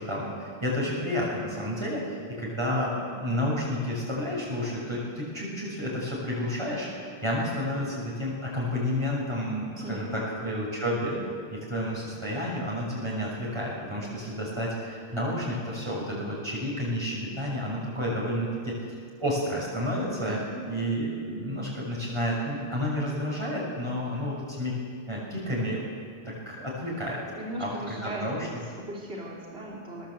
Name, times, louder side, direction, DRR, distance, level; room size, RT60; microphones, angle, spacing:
voice 1, 0.0-11.2 11.5-18.7 19.2-20.4 20.7-24.7 25.1-25.8 26.2-27.2 27.6-28.5, equal, 25° right, -6 dB, 6.5 m, -30 dB
voice 2, 9.8-10.2 20.2-20.6 27.3-30.1, equal, 80° right, -4 dB, 3.5 m, -38 dB
21.5 x 18.5 x 8.1 m, 2.1 s
omnidirectional pair, 1.0 m